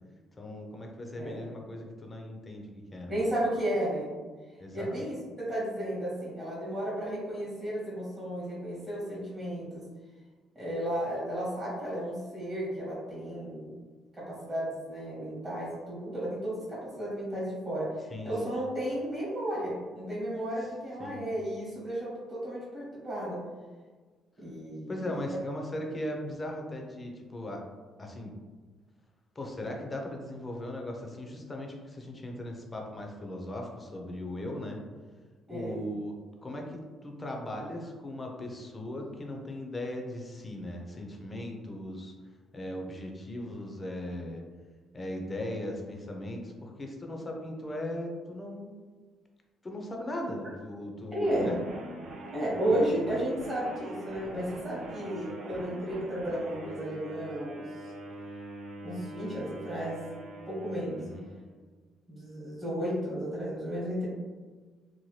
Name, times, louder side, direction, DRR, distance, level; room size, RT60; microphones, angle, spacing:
voice 1, 0.4-3.2 4.6-5.0 18.1-18.5 21.0-21.2 24.9-27.6 28.0-28.3 29.4-34.8 35.5-36.1 36.4-42.1 42.5-44.4 44.9-48.7 49.6-51.6 52.7-53.0 61.0-61.2, left 1 dB, 20° left, 1 dB, 0.5 m, -38 dB
voice 2, 3.1-4.1 4.7-9.9 10.5-13.7 14.1-23.4 24.4-25.1 35.5-35.7 51.1-51.5 52.3-57.6 58.8-60.0 60.5-61.0 62.1-64.1, right 1 dB, 25° right, -9 dB, 1.0 m, -33 dB
sound 1, 51.2-61.5, right 1 dB, 55° right, 0.5 m, -43 dB
2.7 x 2.2 x 3.1 m, 1.4 s
cardioid pair, 135°, 0 cm